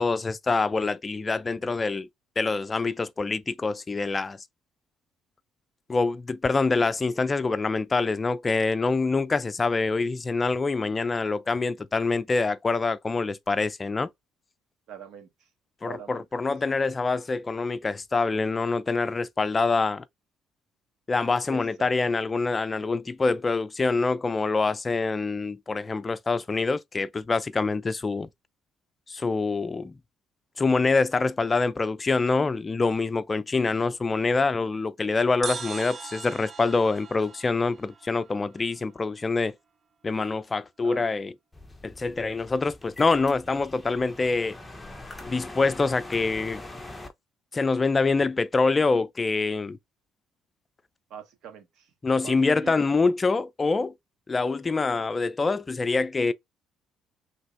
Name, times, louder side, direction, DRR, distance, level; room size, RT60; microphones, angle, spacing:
voice 1, 0.0-2.1 2.4-4.4 5.9-14.1 15.8-20.0 21.1-28.3 29.1-29.9 30.6-39.5 40.0-41.3 41.8-44.6 45.3-46.6 47.5-49.8 52.0-53.9 54.3-56.3, left 3 dB, 25° left, 0.5 m, -25 dB
voice 2, 14.9-15.5 15.8-16.4 21.5-22.2 40.8-41.1 51.1-51.9 52.2-52.8, right 8 dB, 70° right, 1.5 m, -44 dB
sound 1, 35.4-38.9, right 6 dB, 35° right, 0.5 m, -40 dB
sound 2, 41.5-47.1, left 2 dB, 10° left, 1.0 m, -43 dB
5.2 x 3.4 x 2.6 m
cardioid pair, 95°, 0 cm